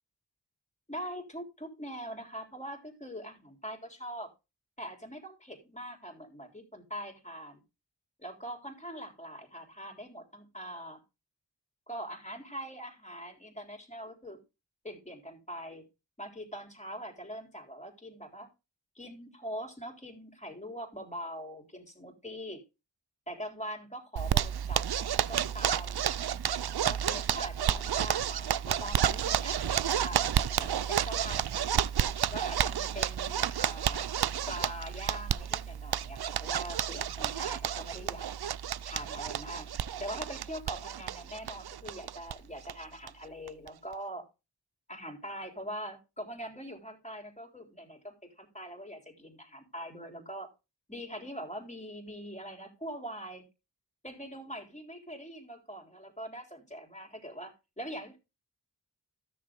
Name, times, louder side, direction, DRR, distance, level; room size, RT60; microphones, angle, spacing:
voice 1, 0.9-4.3 4.8-7.6 8.2-11.0 11.9-14.4 14.8-15.8 16.2-18.5 19.0-22.6 23.3-26.1 26.8-31.4 32.3-34.1 34.5-38.3 38.8-39.7 40.0-44.3 44.9-50.5 50.9-53.4 54.0-58.2, equal, 15° left, 2 dB, 3.6 m, -42 dB
Zipper (clothing), 24.2-42.3 42.7-42.8 43.1-43.2 43.5-43.9, right 9 dB, 65° right, 0.5 m, -31 dB
13.5 x 6.8 x 3.6 m, 0.27 s
wide cardioid pair, 40°, 42 cm